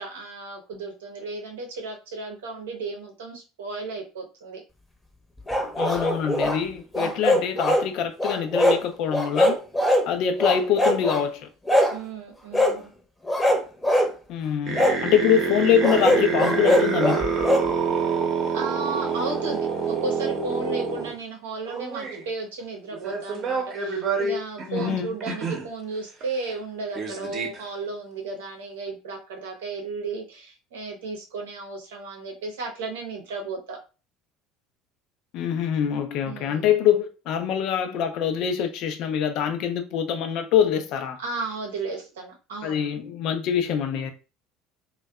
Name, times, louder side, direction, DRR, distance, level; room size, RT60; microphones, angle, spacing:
voice 1, 0.0-4.6 7.0-7.4 11.9-12.9 18.5-33.8 36.2-36.8 41.2-42.8, right 3 dB, 85° right, 0.7 m, -34 dB
sound 1, 5.5-6.6 6.9-7.9 8.2-8.8 9.1-10.1 10.4-11.2 11.7-12.0 12.5-12.8 13.3-14.1 14.7-15.0 15.8-17.7, left 1 dB, 10° left, 0.7 m, -21 dB
voice 2, 5.8-9.6 10.1-11.5 14.3-17.2 24.7-25.1 35.3-41.2 42.6-44.1, left 8 dB, 60° left, 0.4 m, -24 dB
sound 2, 14.6-21.1 21.6-22.2 22.9-25.7 26.2-26.3 26.5-26.6 27.0-27.6, right 5 dB, 45° right, 0.7 m, -27 dB
2.6 x 2.1 x 2.2 m
hypercardioid pair, 70°, 0 cm